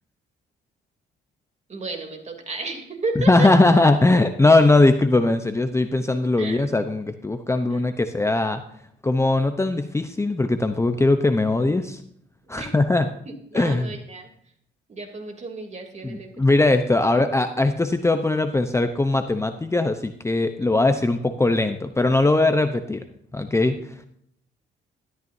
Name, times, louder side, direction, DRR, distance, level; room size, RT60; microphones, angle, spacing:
voice 1, 1.7-3.5 6.4-6.8 7.7-7.9 12.5-12.7 13.2-14.3 14.9-16.8 20.6-20.7, right 3 dB, 35° right, 2 dB, 3.1 m, -33 dB
voice 2, 3.2-8.6 9.0-12.0 12.5-13.1 13.5-13.9 16.0-23.0 23.3-23.9, left 2 dB, 15° left, 8 dB, 0.8 m, -20 dB
13.5 x 12.5 x 2.7 m, 0.68 s
cardioid pair, 90°, 20 cm